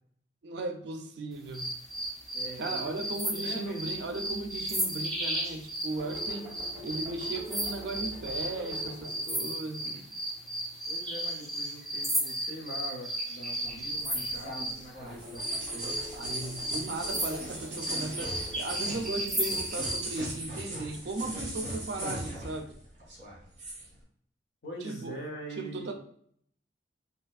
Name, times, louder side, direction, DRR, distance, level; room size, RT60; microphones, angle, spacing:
voice 1, 0.4-1.7 2.6-6.5 6.8-10.0 16.2-22.7 24.8-25.2 25.6-25.9, right 2 dB, 65° right, 6 dB, 0.4 m, -37 dB
sound 1, 1.5-14.8 15.3-20.1, right 1 dB, ahead, 0.5 m, -34 dB
voice 2, 2.3-3.8 9.8-10.0 10.9-16.0 24.6-25.9, right 1 dB, 60° left, 0 dB, 0.8 m, -43 dB
sound 2, 5.9-12.1 12.7-13.3 13.9-14.5 15.1-22.0, equal, 20° right, 1.3 m, -48 dB
sound 3, 13.6-22.7 23.0-23.9, right 1 dB, 35° right, 1.2 m, -39 dB
3.3 x 2.8 x 2.3 m, 0.64 s
head